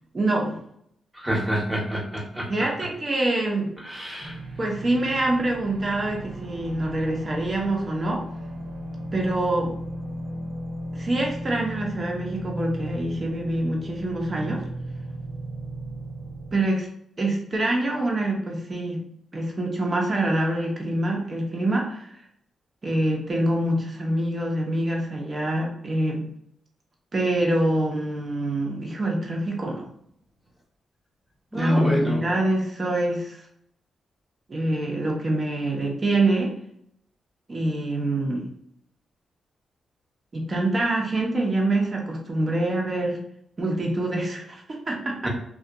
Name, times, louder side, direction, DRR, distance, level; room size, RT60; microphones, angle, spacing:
voice 1, 0.1-0.6 2.5-3.7 4.6-8.2 9.1-9.7 10.9-14.6 16.5-16.9 17.2-19.0 19.3-22.1 22.8-26.3 27.1-29.9 31.5-33.4 34.5-36.5 37.5-38.5 40.3-43.2 43.6-45.3, right 1 dB, 40° right, 0 dB, 0.8 m, -25 dB
voice 2, 1.1-2.5 3.8-4.4 31.5-32.2, equal, 20° right, -2 dB, 1.1 m, -27 dB
sound 1, 4.2-16.6, right 1 dB, 70° right, 0.7 m, -36 dB
2.7 x 2.3 x 2.3 m, 0.71 s
cardioid pair, 60°, 0 cm